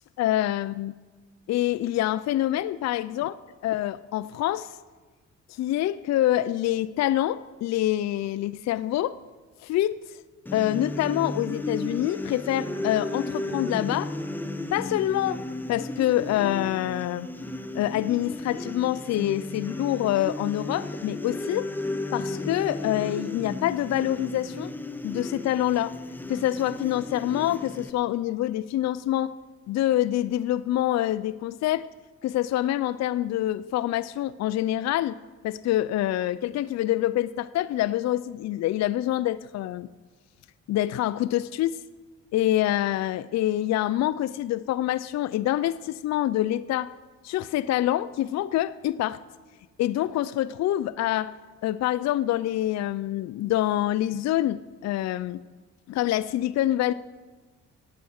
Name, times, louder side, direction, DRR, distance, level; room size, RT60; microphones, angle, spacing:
voice 1, 0.2-0.9 1.5-3.3 3.6-4.8 5.5-9.2 9.6-10.2 10.5-14.1 14.7-15.4 15.7-17.3 17.7-21.7 22.1-24.7 25.0-25.9 26.3-29.3 29.7-31.9 32.2-35.2 35.4-39.9 40.7-41.8 42.3-46.9 47.2-49.2 49.8-51.3 51.6-55.4 55.9-56.9, left 13 dB, 60° left, 14 dB, 0.4 m, -26 dB
sound 1, 10.5-27.9, left 2 dB, 5° left, 0.8 m, -34 dB
15.5 x 8.6 x 6.4 m, 1.3 s
cardioid pair, 90°, 30 cm